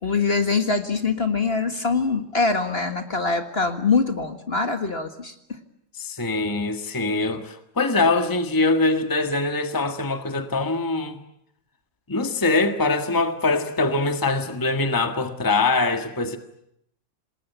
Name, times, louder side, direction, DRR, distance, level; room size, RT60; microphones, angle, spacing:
voice 1, 0.0-5.6, left 4 dB, 35° left, 1.8 m, -23 dB
voice 2, 5.9-11.2 12.1-16.4, left 3 dB, 10° left, 1.6 m, -23 dB
27.5 x 20.0 x 9.3 m
omnidirectional pair, 1.8 m